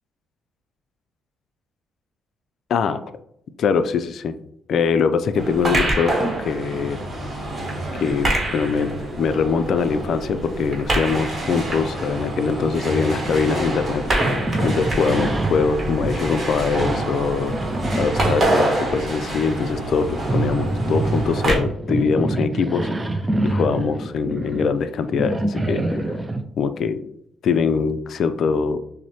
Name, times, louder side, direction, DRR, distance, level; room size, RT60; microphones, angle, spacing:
voice 1, 3.6-4.3 4.7-7.0 8.0-14.1 14.6-17.5 18.0-22.9 23.4-26.1 26.6-27.0 27.4-28.8, left 5 dB, 65° left, 10 dB, 0.3 m, -22 dB
sound 1, 5.3-21.6, right 1 dB, 35° right, 1.2 m, -26 dB
sound 2, 14.2-18.8 19.6-26.4, right 2 dB, 15° right, 0.4 m, -26 dB
5.9 x 2.1 x 2.7 m, 0.74 s
cardioid pair, 90°, 0 cm